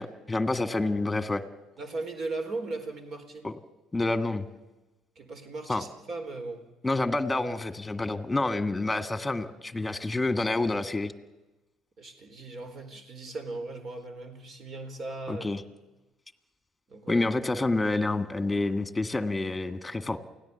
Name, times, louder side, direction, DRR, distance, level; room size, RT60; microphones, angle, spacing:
voice 1, 0.0-1.4 3.4-3.5 3.9-4.5 5.7-5.8 6.8-11.1 15.3-15.6 17.1-20.2, left 2 dB, 15° left, 9 dB, 1.9 m, -28 dB
voice 2, 1.8-3.5 5.2-6.6 12.0-15.5 16.9-17.2, right 2 dB, 50° right, 7 dB, 4.3 m, -37 dB
29.0 x 17.5 x 7.1 m, 1.1 s
hypercardioid pair, 55°, 0 cm